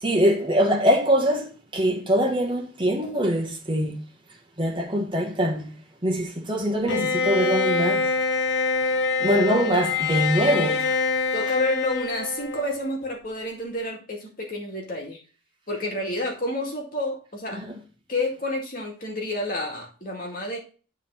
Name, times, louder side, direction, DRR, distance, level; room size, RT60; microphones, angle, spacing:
voice 1, 0.0-4.0 4.6-5.7 6.0-8.1 9.2-11.0 11.5-11.6 17.5-17.8, equal, 25° right, 1.4 m, -23 dB
Bowed string instrument, 6.9-12.9, left 4 dB, 65° left, 0.9 m, -25 dB
voice 2, 11.3-15.2 15.7-17.6 18.1-20.6, left 1 dB, 45° left, 2.1 m, -29 dB
9.3 x 3.6 x 5.7 m
head